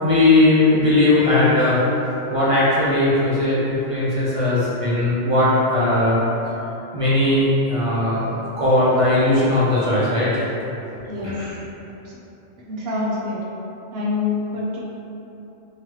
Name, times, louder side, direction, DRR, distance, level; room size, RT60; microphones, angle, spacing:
voice 1, 0.0-1.8 2.3-6.2 6.9-8.3 8.6-10.3 11.2-11.5, left 2 dB, 35° right, -9 dB, 0.7 m, -18 dB
voice 2, 12.7-13.4 13.9-14.8, left 3 dB, 60° right, -5 dB, 1.0 m, -25 dB
3.8 x 3.0 x 3.1 m, 3.0 s
omnidirectional pair, 1.2 m